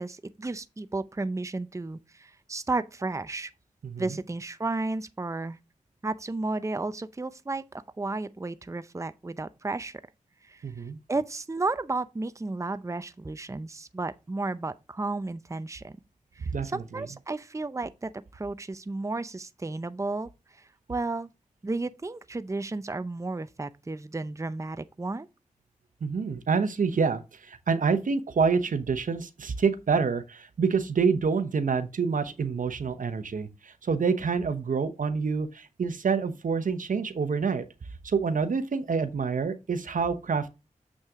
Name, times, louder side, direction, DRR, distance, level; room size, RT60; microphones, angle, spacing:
voice 1, 0.0-3.5 4.0-5.6 6.0-7.6 8.0-10.0 10.4-10.6 11.1-16.0 16.3-21.3 21.6-25.3, right 3 dB, 20° right, 0.6 m, -33 dB
voice 2, 3.8-4.2 10.6-11.0 16.5-17.0 26.0-37.6 38.0-40.5, right 5 dB, 80° right, 0.9 m, -27 dB
7.4 x 6.3 x 3.6 m
cardioid pair, 40°, 14 cm